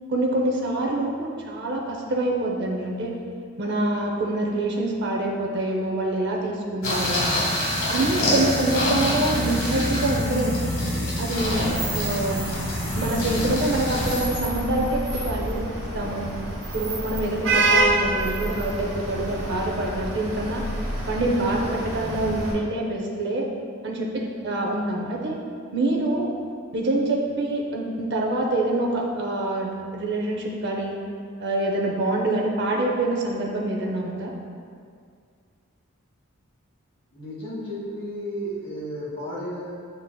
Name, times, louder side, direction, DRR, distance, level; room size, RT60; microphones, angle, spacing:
voice 1, 0.1-3.2 3.6-7.3 7.9-10.6 11.2-12.4 12.9-16.3 16.7-20.6 21.1-23.5 23.8-25.4 25.7-26.3 26.7-31.0 31.4-34.3, right 2 dB, 50° right, -1 dB, 0.6 m, -26 dB
sound 1, 6.8-14.2, left 1 dB, 65° left, 1.3 m, -26 dB
Vehicle horn car horn honking / Traffic noise roadway noise, 11.4-22.5, right 2 dB, 80° right, 1.3 m, -28 dB
voice 2, 37.1-39.7, equal, 25° left, -9 dB, 1.5 m, -33 dB
7.8 x 3.0 x 2.2 m, 2.2 s
head